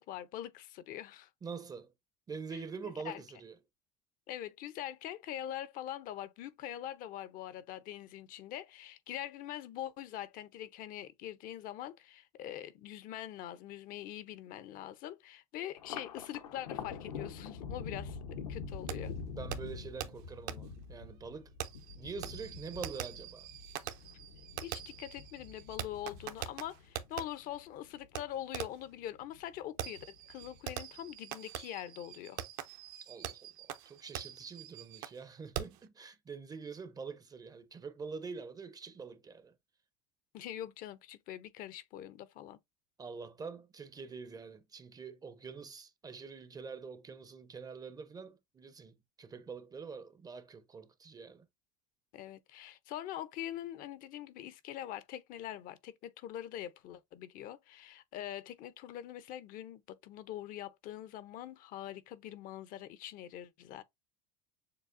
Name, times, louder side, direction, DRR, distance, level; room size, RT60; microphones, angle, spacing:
voice 1, 0.0-1.3 2.5-2.6 3.0-3.2 4.3-19.1 24.6-32.4 40.3-42.6 52.1-63.8, left 12 dB, 55° left, 0.6 m, -43 dB
voice 2, 1.4-1.9 2.3-3.6 18.1-18.2 19.3-21.5 22.0-23.5 33.0-39.5 43.0-51.5, right 5 dB, 20° right, 0.5 m, -45 dB
Thunder, 15.8-28.4 28.8-29.6 30.0-30.8, left 5 dB, 85° left, 0.9 m, -45 dB
Fireworks, 18.9-19.0 19.5-19.6 20.0-20.1 20.5-20.6 21.6-27.2 28.2-28.3 28.5-28.9 29.8-35.2 35.5-35.8, right 11 dB, 65° right, 0.7 m, -43 dB
6.7 x 2.3 x 2.5 m
hypercardioid pair, 90°, 17 cm